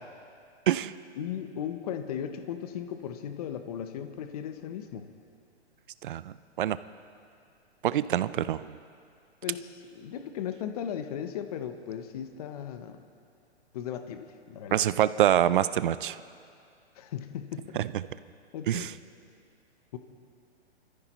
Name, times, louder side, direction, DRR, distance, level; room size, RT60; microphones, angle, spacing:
voice 1, 1.2-5.1 9.4-13.0 13.7-14.9 16.9-17.8 18.5-18.9 19.9-20.0, left 9 dB, 35° left, 8 dB, 0.8 m, -37 dB
voice 2, 6.0-6.8 7.8-8.8 14.7-16.2 17.8-17.9 18.7-18.9, right 11 dB, 50° right, 15 dB, 0.4 m, -25 dB
26.0 x 14.5 x 3.0 m, 2.4 s
hypercardioid pair, 160°, 34 cm